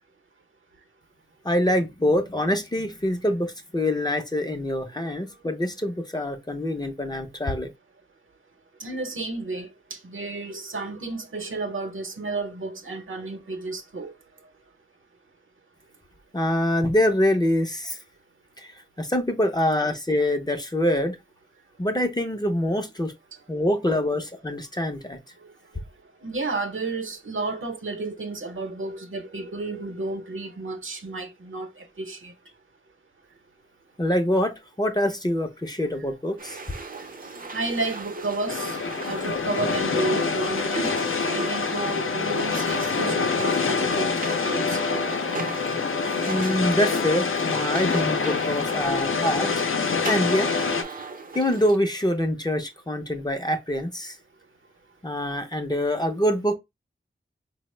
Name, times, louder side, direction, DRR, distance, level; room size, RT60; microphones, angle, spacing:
voice 1, 1.4-7.7 16.3-18.0 18.6-21.2 21.8-23.1 23.5-25.2 34.0-36.6 46.3-49.6 50.0-50.5 50.9-51.1 51.3-54.2 55.0-56.5, left 1 dB, 20° left, 0.5 m, -25 dB
voice 2, 8.8-14.1 26.2-31.7 32.0-32.3 37.0-38.8 39.0-41.0 41.3-44.1 44.4-45.1, right 3 dB, 70° right, 0.8 m, -32 dB
sound 1, 36.4-51.8, right 3 dB, 45° right, 0.5 m, -38 dB
sound 2, 38.5-50.8, left 5 dB, 75° left, 0.5 m, -26 dB
4.2 x 2.0 x 3.1 m
wide cardioid pair, 85°, 21 cm